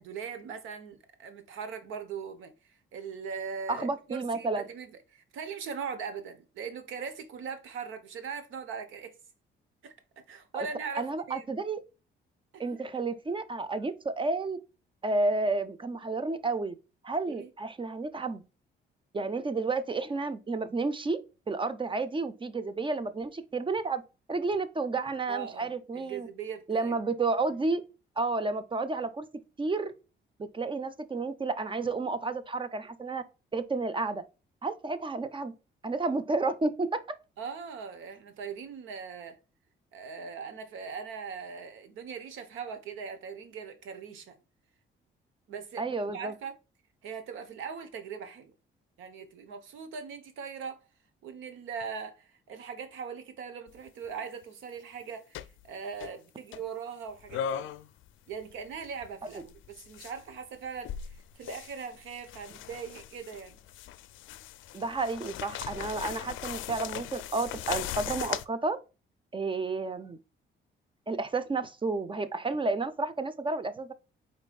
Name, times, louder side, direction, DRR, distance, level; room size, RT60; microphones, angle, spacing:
voice 1, 0.0-9.1 9.8-11.5 12.5-12.6 17.3-17.5 25.3-27.0 37.4-39.4 39.9-44.4 45.5-46.5 47.0-48.5 49.0-50.8 51.2-57.7 58.3-63.6, right 6 dB, 85° right, 1.0 m, -40 dB
voice 2, 3.7-4.6 10.5-10.7 11.0-11.8 12.6-14.6 15.0-16.8 17.0-18.4 19.1-21.2 21.5-24.0 24.3-26.3 26.7-27.8 28.2-29.3 29.6-29.9 30.5-33.2 33.5-34.2 34.6-35.5 35.8-37.0 45.8-46.3 64.7-68.8 69.3-70.2 71.1-73.9, right 3 dB, 25° right, 0.6 m, -31 dB
sound 1, 53.7-53.9 55.4-55.7 56.0-56.1 56.5-56.6 57.3-58.1 58.3-60.2 60.8-68.5, left 10 dB, 80° left, 0.4 m, -38 dB
5.0 x 4.3 x 2.3 m
cardioid pair, 90°, 20 cm